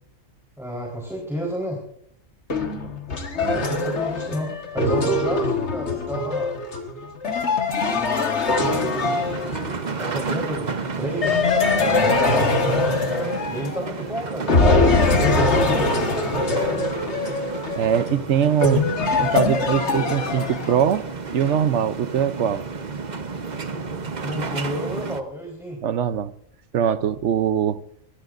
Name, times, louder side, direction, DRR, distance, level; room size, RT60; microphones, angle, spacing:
voice 1, 0.6-1.8 3.3-6.5 7.9-8.6 9.8-16.8 24.2-25.8, equal, ahead, 4.2 m, -31 dB
sound 1, 2.5-9.9 11.2-14.1 14.5-20.9, left 3 dB, 55° left, 1.8 m, -22 dB
sound 2, 8.6-25.2, right 4 dB, 35° right, 1.0 m, -32 dB
voice 2, 17.8-18.9 19.2-21.1 21.3-22.6 25.8-26.3 26.7-27.8, right 8 dB, 65° right, 1.0 m, -22 dB
24.5 x 21.0 x 2.6 m
omnidirectional pair, 1.4 m